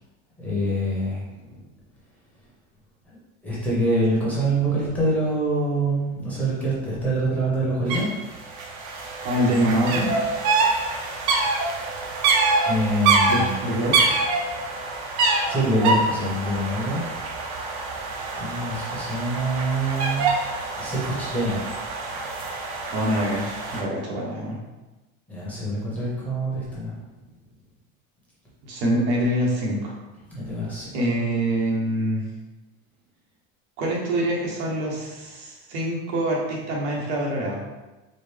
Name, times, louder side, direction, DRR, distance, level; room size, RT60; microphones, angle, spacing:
voice 1, 0.4-1.6 3.4-8.1 12.6-13.8 15.5-17.0 18.4-20.3 20.8-21.6 25.3-27.0 30.3-30.9, right 1 dB, 5° left, -8 dB, 0.8 m, -25 dB
sound 1, 7.9-8.0 8.3-23.8, right 3 dB, 55° right, 0.6 m, -25 dB
voice 2, 9.2-10.1 13.3-14.0 22.9-24.6 28.6-29.9 30.9-32.2 33.8-37.6, right 1 dB, 80° right, -3 dB, 1.1 m, -25 dB
4.2 x 2.1 x 3.3 m, 1.1 s
cardioid pair, 165°, 33 cm